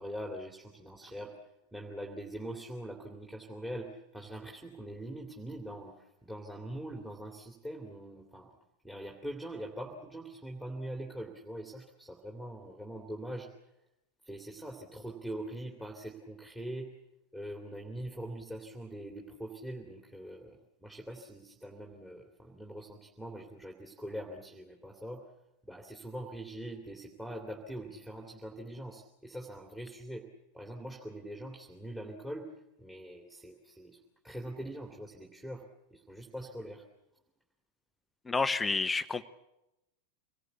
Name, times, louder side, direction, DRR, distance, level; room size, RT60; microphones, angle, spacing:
voice 1, 0.0-1.3 1.7-8.5 8.8-13.5 14.2-16.9 17.3-25.2 25.7-30.2 30.5-32.5 32.8-34.0 34.2-35.6 35.9-36.8, right 1 dB, 5° right, 2.8 m, -43 dB
voice 2, 38.3-39.2, left 4 dB, 10° left, 1.0 m, -29 dB
26.5 x 20.0 x 8.3 m
figure-of-eight pair, 90°, 0 cm